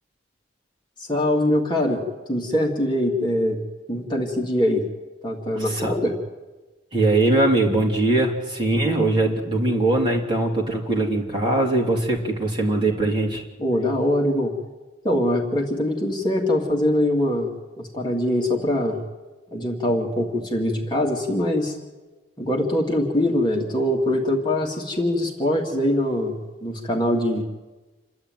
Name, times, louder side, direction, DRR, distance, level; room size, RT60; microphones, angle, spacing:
voice 1, 1.0-2.0 2.3-3.6 3.9-4.8 5.2-6.1 13.6-14.5 15.0-17.5 17.8-19.0 19.5-21.8 22.4-27.4, left 1 dB, 25° left, -1 dB, 2.4 m, -23 dB
voice 2, 5.6-5.9 6.9-13.4, right 2 dB, 25° right, -1 dB, 3.1 m, -21 dB
28.0 x 12.0 x 9.3 m, 1.2 s
head